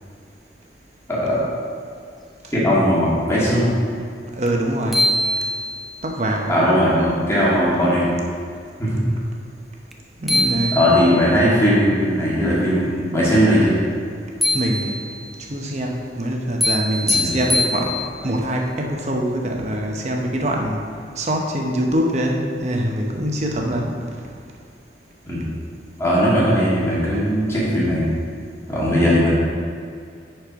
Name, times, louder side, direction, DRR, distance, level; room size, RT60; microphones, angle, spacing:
voice 1, 1.1-1.4 2.5-3.7 6.5-8.2 8.8-8.9 10.7-13.8 17.0-17.4 25.3-25.4 26.0-28.1 28.7-29.3, equal, 15° left, -8 dB, 2.1 m, -18 dB
voice 2, 4.4-5.0 6.0-6.6 10.2-10.8 14.5-15.0 15.5-18.0 18.2-20.8 21.1-24.2 28.9-29.2, equal, 40° right, 1 dB, 0.9 m, -24 dB
sound 1, 4.5-4.6 4.9-6.0 9.9-10.0 10.3-11.3 14.4-15.3 16.6-18.3, left 1 dB, ahead, 0.5 m, -23 dB
10.0 x 4.6 x 4.7 m, 2.2 s
head